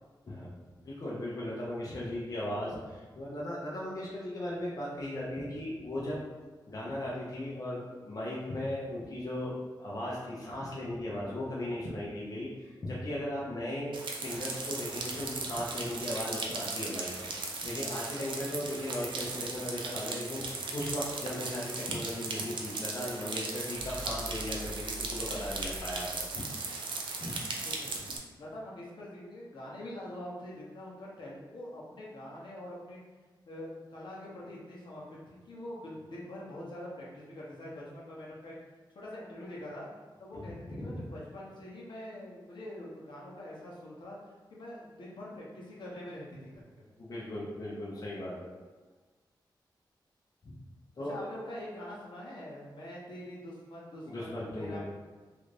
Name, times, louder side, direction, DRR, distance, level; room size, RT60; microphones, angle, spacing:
voice 1, 0.8-6.2 6.7-17.1 17.4-26.1 26.3-26.4 27.2-27.4 40.3-41.0 47.0-48.5 50.4-50.5 51.0-51.3 54.1-54.9, left 1 dB, 45° left, -6 dB, 0.7 m, -37 dB
sound 1, 13.9-28.2, right 3 dB, 85° right, 0.5 m, -37 dB
sound 2, 23.7-26.5, left 1 dB, 30° right, 0.3 m, -44 dB
voice 2, 27.5-28.0 28.4-33.0 33.5-38.6 38.9-39.9 40.2-44.2 44.5-46.9 51.0-54.9, left 1 dB, 70° left, -5 dB, 0.9 m, -44 dB
3.2 x 2.5 x 3.3 m, 1.3 s
wide cardioid pair, 100°, 8 cm